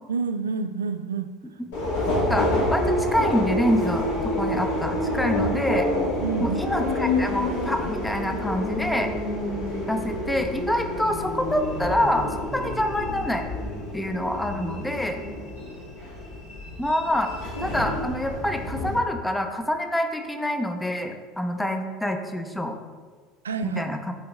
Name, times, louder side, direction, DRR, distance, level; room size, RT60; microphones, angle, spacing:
voice 1, 0.1-1.3 6.2-6.6 23.4-23.8, right 5 dB, 80° right, 10 dB, 0.3 m, -28 dB
Subway metro underground, 1.7-19.0, left 1 dB, 65° left, 1.7 m, -28 dB
voice 2, 2.3-5.9 6.4-9.1 9.9-13.4 13.9-15.2 16.8-17.3 17.6-22.8 23.6-24.1, equal, 5° left, 5 dB, 0.7 m, -26 dB
8.6 x 3.9 x 3.5 m, 1.5 s
figure-of-eight pair, 70°, 0 cm